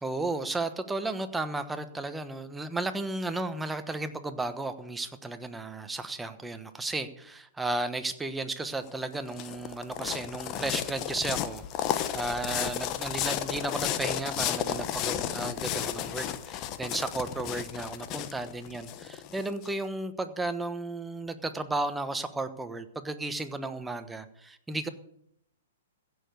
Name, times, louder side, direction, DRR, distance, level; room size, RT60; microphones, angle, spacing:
voice 1, 0.0-24.9, right 2 dB, 10° right, 9 dB, 1.2 m, -34 dB
sound 1, 8.9-19.7, left 11 dB, 35° left, 1.1 m, -33 dB
15.5 x 6.9 x 8.1 m, 0.73 s
hypercardioid pair, 120°, 0 cm